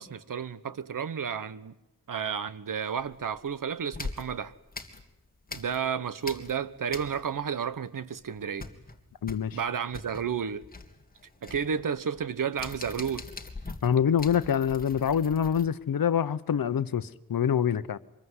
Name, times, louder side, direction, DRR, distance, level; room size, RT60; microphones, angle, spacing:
voice 1, 0.0-1.7 2.1-4.5 5.5-8.7 9.5-10.7 11.4-13.3, right 7 dB, 60° right, 15 dB, 1.2 m, -32 dB
sound 1, 3.0-3.5 3.9-5.9 6.2-7.5 7.8-7.9 8.2-15.7, left 3 dB, 25° left, 2.3 m, -42 dB
voice 2, 9.2-9.6 13.8-18.0, left 8 dB, 65° left, 14 dB, 1.0 m, -26 dB
25.5 x 22.0 x 9.7 m, 0.86 s
wide cardioid pair, 145°, 37 cm